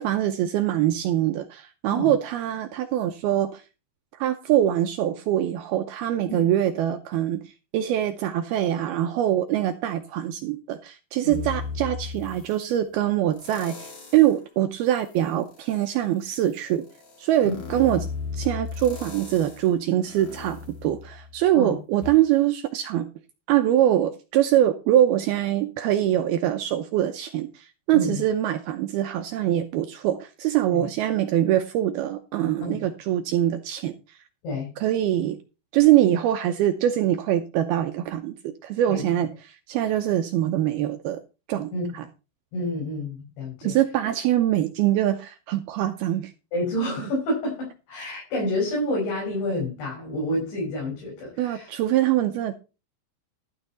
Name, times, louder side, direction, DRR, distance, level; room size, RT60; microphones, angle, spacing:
voice 1, 0.0-3.6 4.2-7.4 7.7-16.8 17.2-18.1 18.3-23.1 23.5-33.9 34.8-35.4 35.7-41.2 41.5-42.1 43.6-46.3 51.4-52.5, right 12 dB, 80° right, 2.4 m, -23 dB
sound 1, 11.3-12.7 13.3-14.4 14.9-21.6 22.0-22.1, left 5 dB, 40° left, 2.7 m, -37 dB
voice 2, 38.9-39.3 41.7-41.9 42.5-43.7 46.5-51.7, left 1 dB, 80° left, 7.5 m, -29 dB
12.5 x 8.9 x 4.1 m
omnidirectional pair, 5.1 m